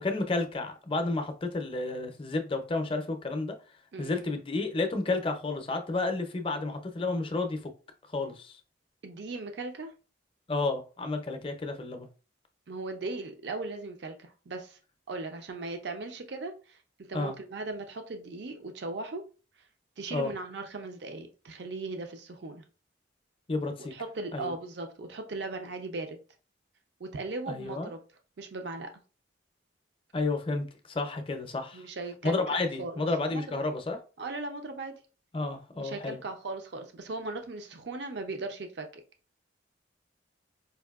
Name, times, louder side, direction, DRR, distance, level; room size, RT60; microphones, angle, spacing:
voice 1, 0.0-3.6 4.0-7.6 8.1-8.5 10.5-12.1 17.1-17.3 20.1-20.3 23.5-23.9 24.3-24.5 27.5-27.9 30.1-31.8 32.2-34.0 35.3-36.2, left 3 dB, 30° left, 0.5 m, -31 dB
voice 2, 3.9-4.3 9.0-9.9 12.7-14.8 15.1-19.2 20.0-22.6 23.8-26.2 27.0-28.0 28.4-28.9 31.7-33.5 34.2-34.9 35.8-38.9, right 3 dB, 60° right, 0.5 m, -38 dB
4.6 x 2.6 x 2.3 m
head